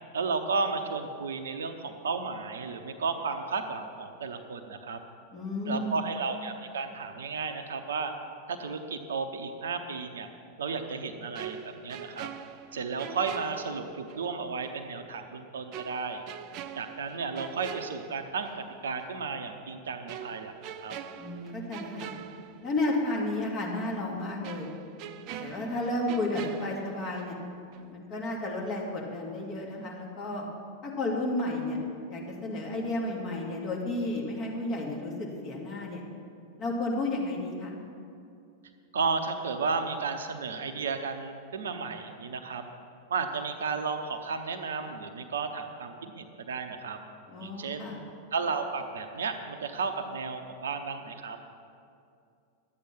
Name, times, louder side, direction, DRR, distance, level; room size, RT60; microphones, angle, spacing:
voice 1, 0.1-5.0 5.7-8.1 8.5-10.3 10.6-11.6 11.8-12.3 12.7-16.2 16.8-20.5 20.8-20.9 38.9-42.6 43.1-47.0 47.4-47.8 48.3-51.4, right 4 dB, 65° right, 7 dB, 0.8 m, -33 dB
voice 2, 5.3-6.0 21.2-22.1 22.6-24.7 25.4-27.4 27.9-30.5 30.8-31.8 32.1-36.0 36.6-37.7 47.3-48.0, left 2 dB, 35° left, -2 dB, 2.3 m, -32 dB
sound 1, 11.3-14.3 14.6-14.8 15.7-18.7 19.0-19.2 20.1-23.1 23.4-23.5 24.4-27.5 27.7-28.0, right 9 dB, 40° right, 0.5 m, -43 dB
12.0 x 8.7 x 5.9 m, 2.5 s
figure-of-eight pair, 90°, 0 cm